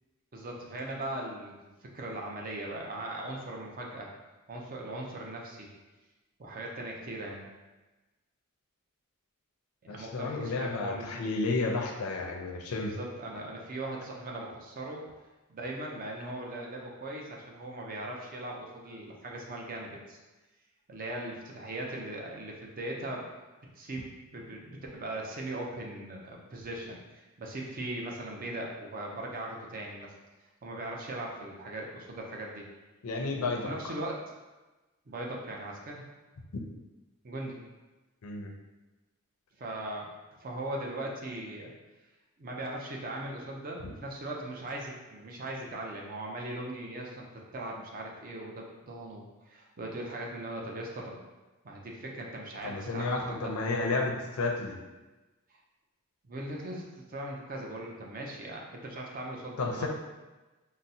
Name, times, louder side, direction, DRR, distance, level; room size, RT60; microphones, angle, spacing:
voice 1, 0.3-4.1 4.5-5.7 6.4-7.5 9.9-11.3 12.8-15.0 15.5-20.2 20.9-23.3 23.8-30.1 30.6-32.7 33.3-34.3 35.1-36.0 37.2-37.6 39.6-40.1 40.4-41.7 42.4-51.3 51.6-53.5 55.5-55.6 56.2-59.9, right 1 dB, 40° right, -1 dB, 0.5 m, -39 dB
voice 2, 9.9-12.9 33.0-33.7 38.2-38.5 52.6-54.8 59.6-59.9, left 3 dB, 85° left, 1 dB, 0.5 m, -31 dB
3.8 x 2.0 x 2.7 m, 1.1 s
head